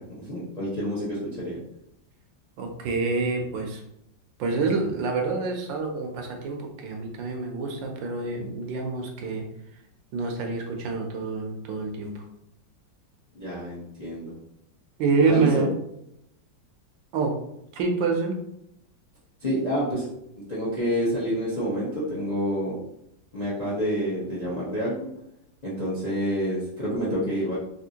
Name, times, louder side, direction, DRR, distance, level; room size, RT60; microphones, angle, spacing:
voice 1, 0.2-1.6 13.3-14.3 15.3-15.6 19.4-20.1 20.3-22.8 23.3-25.1 25.6-27.6, equal, 35° left, -7 dB, 0.6 m, -28 dB
voice 2, 2.6-3.8 4.4-9.4 10.1-12.1 15.0-15.7 17.1-17.3 17.7-18.4, right 4 dB, 75° right, 3 dB, 1.3 m, -27 dB
3.5 x 2.7 x 2.8 m, 0.78 s
omnidirectional pair, 2.1 m